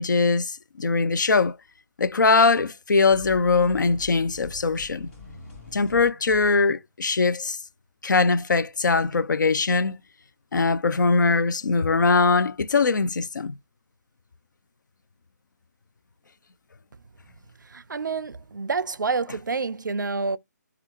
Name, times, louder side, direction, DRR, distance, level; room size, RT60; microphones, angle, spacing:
voice 1, 0.0-1.6 2.0-5.1 5.7-7.6 8.0-10.0 10.5-13.6, left 4 dB, 80° left, 0.4 m, -21 dB
sound 1, 3.1-6.8, left 4 dB, 45° left, 1.7 m, -44 dB
voice 2, 17.6-20.4, right 4 dB, 85° right, 0.4 m, -28 dB
3.4 x 2.4 x 2.9 m
figure-of-eight pair, 150°, 10 cm